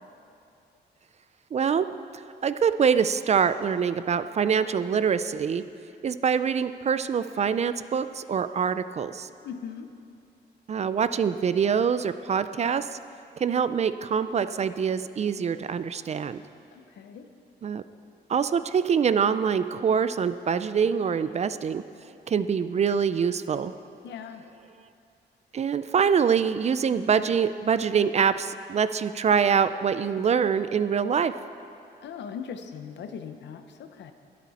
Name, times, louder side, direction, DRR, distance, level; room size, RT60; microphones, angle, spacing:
voice 1, 1.5-1.9 2.4-5.6 6.0-9.3 10.7-12.9 13.4-16.4 17.6-17.8 18.3-21.8 22.3-23.7 25.5-31.3, right 7 dB, 40° right, 13 dB, 0.4 m, -24 dB
voice 2, 9.4-9.9 16.7-17.3 24.0-24.4 32.0-34.1, left 7 dB, 80° left, 8 dB, 0.9 m, -39 dB
22.0 x 8.4 x 4.2 m, 2.6 s
cardioid pair, 120°, 18 cm